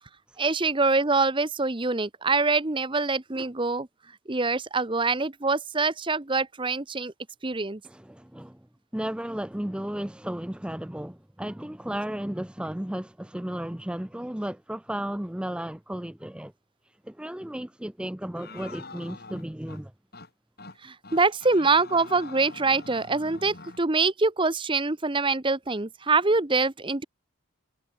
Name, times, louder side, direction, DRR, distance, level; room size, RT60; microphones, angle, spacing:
voice 1, 0.4-3.9 4.3-7.1 7.4-7.8 20.8-27.0, right 3 dB, 25° right, 0.9 m, -25 dB
voice 2, 7.8-8.6 8.9-16.5 16.9-19.9, right 1 dB, 5° right, 0.4 m, -34 dB
sound 1, 18.4-19.8 20.1-20.3 20.6-20.8 21.0-23.8, left 3 dB, 45° left, 7.7 m, -44 dB
head